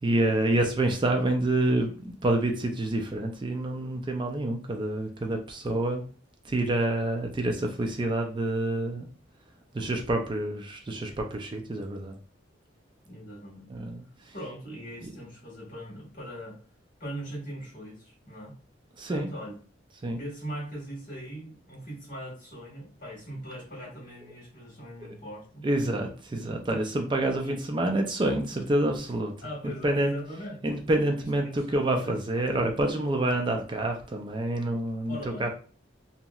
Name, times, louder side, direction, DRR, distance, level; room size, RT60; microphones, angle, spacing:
voice 1, 0.0-6.0 6.4-9.1 9.7-12.2 13.7-14.3 15.0-15.1 19.0-19.3 20.0-20.2 25.0-25.1 25.6-29.3 29.8-30.1 30.6-35.5, right 1 dB, 25° right, 3 dB, 0.4 m, -27 dB
voice 2, 13.0-13.7 14.3-16.6 17.0-18.5 19.1-19.5 20.1-25.7 26.3-26.8 27.4-27.6 29.4-30.6 31.4-32.2 35.1-35.5, equal, 45° left, -4 dB, 1.5 m, -40 dB
2.9 x 2.8 x 2.3 m, 0.40 s
head